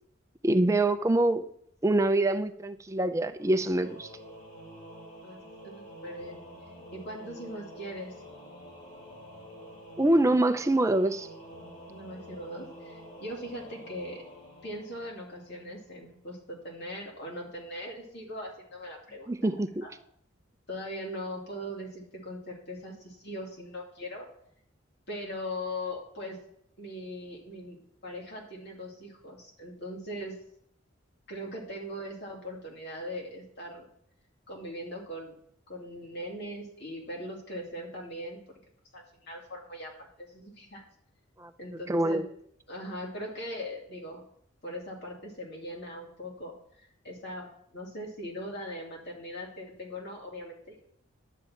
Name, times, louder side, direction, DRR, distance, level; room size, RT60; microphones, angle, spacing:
voice 1, 0.4-1.4 1.8-4.1 10.0-11.3 19.3-19.8 41.4-41.5 41.9-42.3, right 1 dB, 15° right, 0.5 m, -25 dB
Singing / Musical instrument, 3.3-15.8, equal, 40° left, 2.6 m, -48 dB
voice 2, 5.2-6.4 6.9-8.1 11.9-14.2 14.6-19.5 19.8-19.9 20.7-24.3 25.1-26.4 26.8-30.3 31.3-33.9 34.5-35.3 35.7-38.4 38.9-40.8 41.6-42.2 42.7-44.2 44.6-46.5 47.0-50.9, equal, 55° left, 2.7 m, -40 dB
11.0 x 8.9 x 4.4 m
head